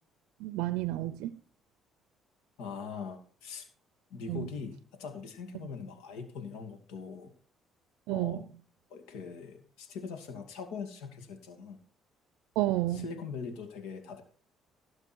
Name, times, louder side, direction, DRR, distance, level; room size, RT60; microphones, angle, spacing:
voice 1, 0.4-1.4 4.3-4.5 8.1-8.4 12.6-13.1, right 16 dB, 85° right, 0.5 m, -31 dB
voice 2, 2.6-3.7 4.1-7.3 8.1-8.4 8.9-11.8 12.9-14.2, left 5 dB, 90° left, 2.5 m, -42 dB
17.0 x 6.8 x 4.6 m
supercardioid pair, 80°, 0 cm